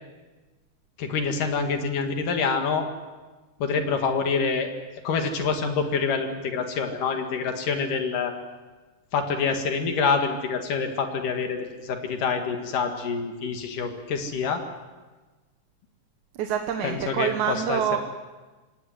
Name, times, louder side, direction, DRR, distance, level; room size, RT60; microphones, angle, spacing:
voice 1, 1.0-2.9 3.6-4.7 5.1-8.3 9.1-14.6 16.8-18.0, left 5 dB, 75° left, 5 dB, 3.5 m, -26 dB
voice 2, 16.3-18.0, right 9 dB, 70° right, 5 dB, 2.4 m, -26 dB
26.0 x 18.5 x 7.9 m, 1.2 s
omnidirectional pair, 3.8 m